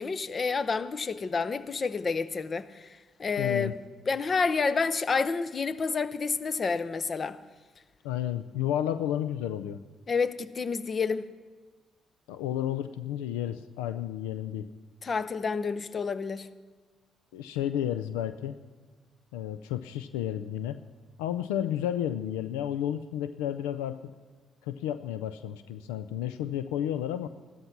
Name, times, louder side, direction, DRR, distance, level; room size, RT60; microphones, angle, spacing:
voice 1, 0.0-2.8 3.2-3.8 4.1-7.4 10.1-11.3 15.0-16.5, left 5 dB, 40° left, 0.8 m, -29 dB
voice 2, 3.4-3.7 8.0-9.8 12.3-14.7 17.3-18.6 19.3-20.8 21.2-24.0 24.6-27.3, left 11 dB, 80° left, 0.4 m, -32 dB
14.5 x 13.0 x 6.0 m
hypercardioid pair, 50°, 0 cm